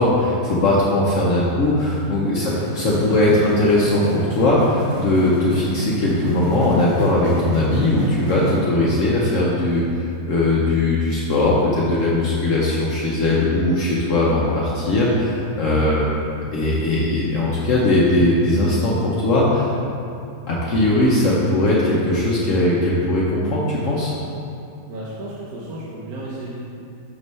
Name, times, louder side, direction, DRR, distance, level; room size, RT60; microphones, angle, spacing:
voice 1, 0.0-9.8 10.3-16.1 16.3-19.7 20.5-24.1, left 1 dB, 60° left, -5 dB, 1.0 m, -19 dB
voice 2, 2.3-2.7 24.9-26.6, right 1 dB, 75° right, -6 dB, 1.2 m, -33 dB
sound 1, 2.6-8.6, right 2 dB, 40° right, 1.0 m, -29 dB
6.2 x 3.2 x 5.3 m, 2.6 s
omnidirectional pair, 1.6 m